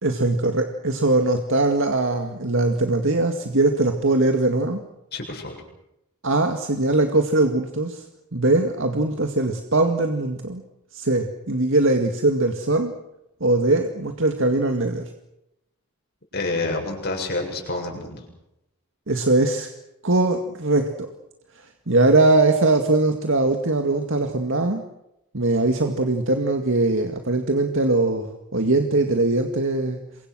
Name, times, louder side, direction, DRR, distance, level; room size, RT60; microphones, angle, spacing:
voice 1, 0.0-4.8 6.2-8.0 8.3-10.6 10.9-12.9 13.4-15.1 19.1-19.7 20.0-21.1 21.9-24.8 25.3-30.0, right 2 dB, 60° right, 5 dB, 2.1 m, -21 dB
voice 2, 5.1-5.6 16.3-18.2, left 2 dB, 45° left, 1 dB, 7.4 m, -28 dB
28.5 x 24.0 x 6.4 m, 0.84 s
head